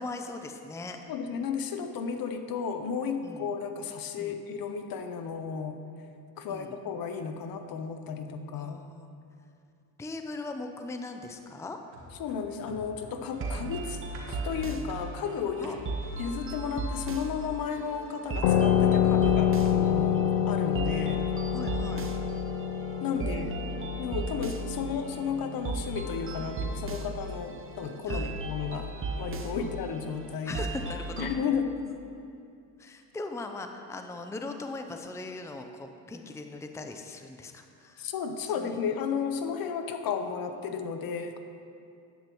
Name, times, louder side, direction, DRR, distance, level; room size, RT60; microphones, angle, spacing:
voice 1, 0.0-1.0 3.2-3.5 4.2-4.4 6.5-6.8 8.6-9.1 10.0-11.8 15.6-15.8 21.5-22.1 23.2-23.9 28.0-28.3 29.6-29.7 30.5-31.3 32.8-38.1 38.4-38.8, left 2 dB, 5° left, 5 dB, 0.6 m, -40 dB
voice 2, 1.1-5.8 6.4-8.8 12.2-14.0 14.3-15.8 16.2-21.2 23.0-23.6 24.0-30.6 31.2-31.7 38.0-41.4, left 6 dB, 55° left, 7 dB, 0.9 m, -33 dB
sound 1, 11.9-16.4 16.8-16.9, equal, 85° right, 1.8 m, -47 dB
sound 2, 13.3-31.4, right 3 dB, 30° right, 0.9 m, -37 dB
sound 3, 18.4-27.6, left 9 dB, 90° left, 0.6 m, -28 dB
11.0 x 9.4 x 3.1 m, 2.5 s
supercardioid pair, 80°, 41 cm